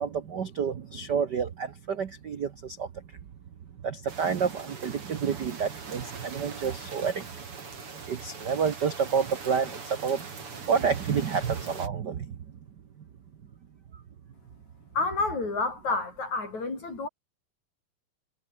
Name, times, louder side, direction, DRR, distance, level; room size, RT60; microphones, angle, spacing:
voice 1, 0.0-2.9 3.8-7.4 8.1-10.3 10.6-12.4, right 6 dB, 80° right, 0.9 m, -29 dB
sound 1, 4.1-11.9, right 5 dB, 40° right, 4.5 m, -42 dB
voice 2, 14.9-17.1, left 3 dB, 60° left, 9.3 m, -29 dB
omnidirectional pair, 3.8 m